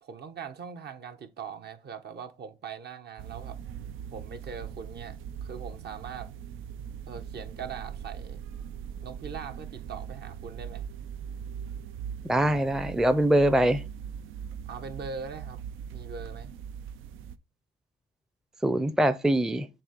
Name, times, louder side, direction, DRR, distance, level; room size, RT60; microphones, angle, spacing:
voice 1, 0.0-3.6 4.1-6.3 7.1-8.4 9.0-10.8 14.7-15.6 15.9-16.5, right 6 dB, 55° right, 1.0 m, -41 dB
sound 1, 3.2-17.4, right 8 dB, 90° right, 0.5 m, -40 dB
voice 2, 12.2-13.8 18.6-19.7, right 1 dB, 5° right, 0.5 m, -23 dB
7.3 x 2.8 x 5.2 m
cardioid pair, 90°, 20 cm